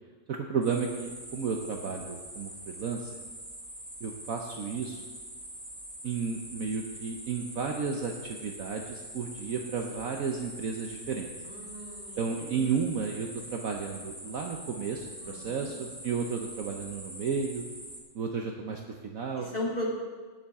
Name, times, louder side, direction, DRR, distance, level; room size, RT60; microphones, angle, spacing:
voice 1, 0.3-3.1 4.0-5.0 6.0-11.3 12.2-17.6 18.1-19.5, right 5 dB, 60° right, 2 dB, 1.1 m, -33 dB
sound 1, 0.6-18.0, right 1 dB, 10° right, 1.1 m, -44 dB
voice 2, 11.4-12.5 15.2-15.8 19.4-19.9, left 1 dB, 25° left, -4 dB, 2.2 m, -37 dB
18.0 x 7.0 x 3.6 m, 1.4 s
omnidirectional pair, 2.0 m